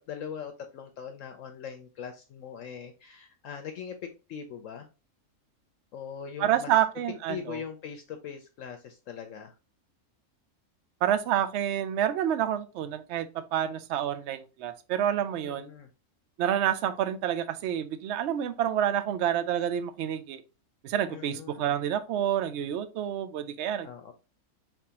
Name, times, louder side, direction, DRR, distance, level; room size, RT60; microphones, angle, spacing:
voice 1, 0.1-4.9 5.9-6.7 7.3-9.5 15.4-15.9 21.1-21.7 23.8-24.1, left 7 dB, 70° left, 0.9 m, -41 dB
voice 2, 6.4-7.6 11.0-15.7 16.4-20.4 20.8-23.9, right 10 dB, 65° right, 0.7 m, -28 dB
4.8 x 3.5 x 2.8 m
omnidirectional pair, 1.5 m